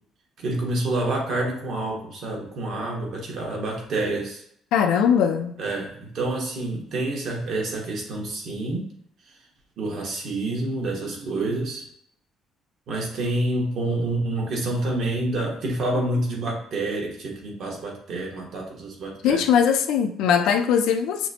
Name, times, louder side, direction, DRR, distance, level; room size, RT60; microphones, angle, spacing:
voice 1, 0.4-4.4 5.6-8.9 9.8-11.9 12.9-19.4, right 2 dB, 50° right, 1.2 m, -28 dB
voice 2, 4.7-5.5 19.2-21.3, left 7 dB, 80° left, 0.4 m, -20 dB
5.8 x 2.0 x 2.8 m
cardioid pair, 175°, 0 cm